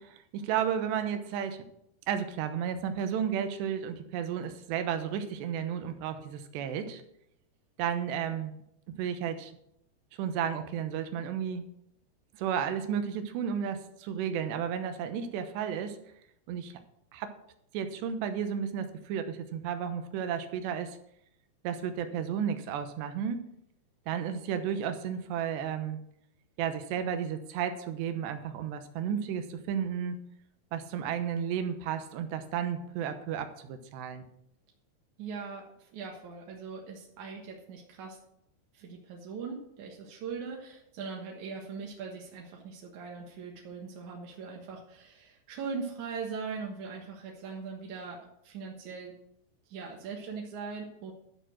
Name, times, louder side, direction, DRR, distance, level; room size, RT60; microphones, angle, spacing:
voice 1, 0.0-1.6 2.1-7.0 7.8-8.5 8.9-9.5 10.2-11.7 12.4-16.0 16.5-16.7 17.1-17.3 17.7-21.0 21.6-23.5 24.1-26.0 26.6-30.2 30.7-34.3, right 8 dB, 85° right, 8 dB, 3.2 m, -33 dB
voice 2, 35.2-38.2 38.7-49.1 49.7-51.1, right 5 dB, 60° right, -1 dB, 2.2 m, -40 dB
12.5 x 6.8 x 6.2 m, 0.75 s
omnidirectional pair, 4.9 m